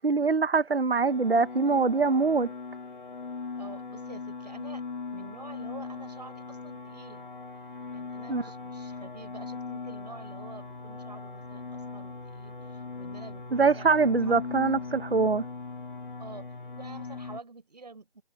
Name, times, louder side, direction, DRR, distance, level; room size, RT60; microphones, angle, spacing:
voice 1, 0.0-2.5 8.3-8.4 13.5-15.4, right 4 dB, 65° right, 1.3 m, -23 dB
sound 1, 1.1-17.4, left 4 dB, 50° left, 2.6 m, -40 dB
voice 2, 3.5-4.8 5.1-7.3 7.9-13.9 14.2-14.4 16.2-16.5 16.8-18.2, right 3 dB, 40° right, 6.4 m, -47 dB
figure-of-eight pair, 180°, 31 cm